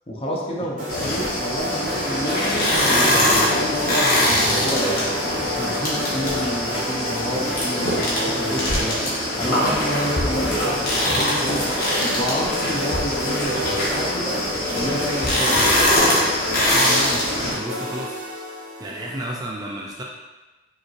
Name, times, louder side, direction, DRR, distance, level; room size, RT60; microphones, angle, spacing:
voice 1, 0.1-5.1 5.4-9.0 9.4-11.7 12.1-14.4 14.7-15.8, equal, 30° left, -3 dB, 0.6 m, -29 dB
sound 1, 0.8-19.4, left 1 dB, 45° right, 1.3 m, -30 dB
sound 2, 0.9-17.5, left 1 dB, 50° left, 1.1 m, -22 dB
sound 3, 1.2-8.7, left 1 dB, 80° right, 0.9 m, -36 dB
voice 2, 16.5-18.2 18.8-20.0, right 1 dB, 20° right, -2 dB, 0.3 m, -32 dB
5.0 x 3.1 x 2.5 m, 1.1 s
head